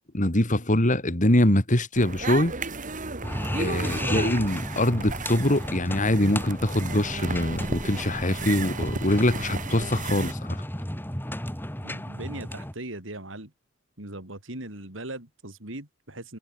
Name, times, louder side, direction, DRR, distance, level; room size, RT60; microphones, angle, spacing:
voice 1, 0.1-2.5 3.6-10.6, left 1 dB, 40° left, 3.3 m, -23 dB
sound 1, 1.9-10.3, right 3 dB, 40° right, 3.4 m, -34 dB
sound 2, 3.2-12.7, left 1 dB, 10° left, 3.8 m, -34 dB
voice 2, 11.8-13.5 14.0-16.4, right 1 dB, 75° right, 5.2 m, -39 dB
head